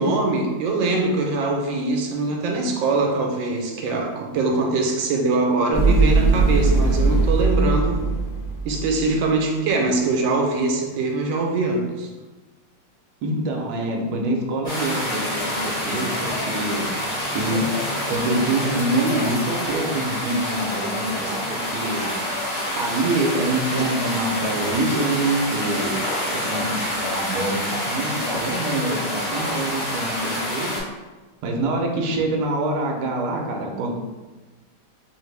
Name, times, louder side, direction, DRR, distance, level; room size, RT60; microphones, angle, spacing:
voice 1, 0.0-8.0 8.6-12.1, right 3 dB, 85° right, 2 dB, 1.4 m, -22 dB
sound 1, 5.7-9.2, right 3 dB, 65° left, 1.2 m, -19 dB
voice 2, 13.2-16.9 17.3-17.8 18.1-22.3 22.8-26.0 26.3-30.7 31.4-33.9, right 2 dB, 70° right, 0 dB, 1.1 m, -25 dB
sound 2, 14.6-30.8, left 1 dB, 20° left, 1.5 m, -27 dB
4.1 x 2.9 x 3.2 m, 1.2 s
omnidirectional pair, 2.0 m